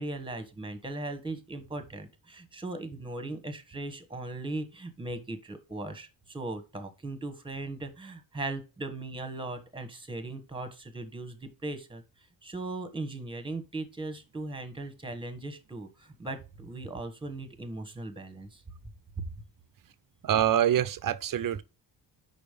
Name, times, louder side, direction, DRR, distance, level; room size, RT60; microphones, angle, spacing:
voice 1, 0.0-12.0 12.4-18.6 19.2-19.3, right 2 dB, 10° right, 1.2 m, -38 dB
voice 2, 20.2-21.6, right 10 dB, 50° right, 0.6 m, -25 dB
5.1 x 4.2 x 5.0 m
cardioid pair, 75°, 43 cm